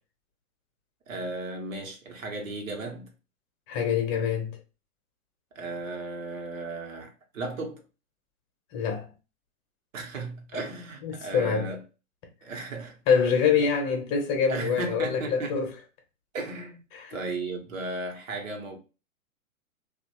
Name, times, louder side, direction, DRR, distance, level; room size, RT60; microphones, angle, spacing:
voice 1, 1.1-3.1 5.5-7.8 9.9-11.8 12.4-13.0 13.6-13.7 14.5-15.6 16.3-16.8 17.1-18.8, right 3 dB, 65° right, 1.1 m, -35 dB
voice 2, 3.7-4.6 8.7-9.1 11.0-11.7 13.1-15.7 16.9-17.2, left 6 dB, 30° left, 0.9 m, -25 dB
3.0 x 2.4 x 2.9 m
hypercardioid pair, 120°, 42 cm